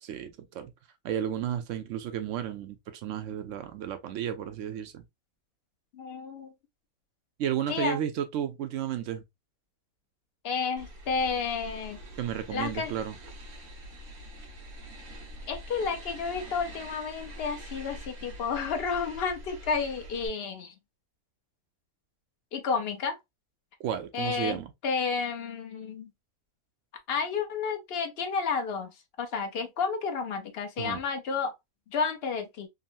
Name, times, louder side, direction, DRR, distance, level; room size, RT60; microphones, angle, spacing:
voice 1, 0.0-0.7 1.0-5.0 7.4-9.2 12.2-13.1 23.8-24.7 30.8-31.0, right 10 dB, 70° right, 0.8 m, -33 dB
voice 2, 5.9-6.5 7.7-8.0 10.4-12.0 12.5-12.9 15.5-20.7 22.5-23.2 24.1-24.6 24.8-26.1 27.1-31.5 31.9-32.7, left 5 dB, 55° left, 0.8 m, -31 dB
sound 1, 10.8-20.3, equal, 90° right, 1.7 m, -45 dB
3.8 x 2.1 x 2.5 m
omnidirectional pair, 1.5 m